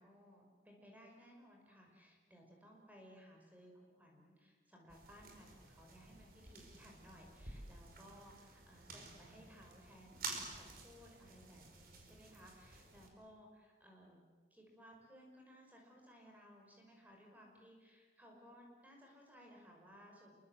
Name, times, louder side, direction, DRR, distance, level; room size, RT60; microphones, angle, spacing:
voice 1, 0.0-14.2 14.5-20.4, equal, 10° right, 0 dB, 5.7 m, -60 dB
sound 1, 4.9-13.1, right 3 dB, 55° right, 5.2 m, -51 dB
27.5 x 24.0 x 7.8 m, 1.5 s
head